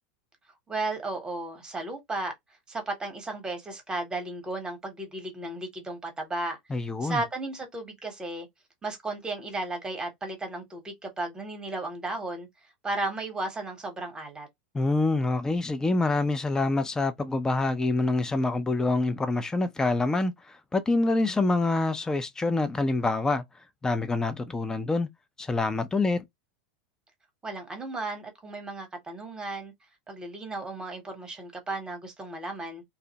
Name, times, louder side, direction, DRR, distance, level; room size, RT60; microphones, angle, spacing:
voice 1, 0.7-2.3 2.7-8.5 8.8-12.5 12.8-14.5 27.4-29.7 30.1-32.8, right 2 dB, 15° right, 1.0 m, -34 dB
voice 2, 6.7-7.2 14.7-20.3 20.7-23.4 23.8-25.1 25.4-26.2, left 2 dB, 10° left, 0.5 m, -26 dB
2.6 x 2.0 x 2.8 m
hypercardioid pair, 90°, 5 cm